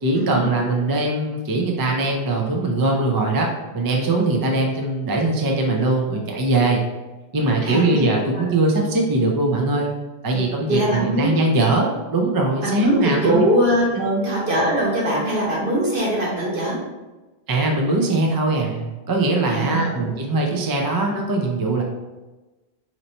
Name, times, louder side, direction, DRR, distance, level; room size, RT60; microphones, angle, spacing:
voice 1, 0.0-6.8 7.3-9.9 10.2-13.4 14.0-14.2 17.5-21.8, right 2 dB, 35° right, 0 dB, 0.3 m, -21 dB
voice 2, 7.6-8.0 8.3-8.5 10.3-10.4 10.7-11.4 12.6-13.9 14.2-16.8 19.5-19.9, right 1 dB, 55° right, -5 dB, 1.3 m, -21 dB
2.9 x 2.6 x 4.2 m, 1.1 s
omnidirectional pair, 1.1 m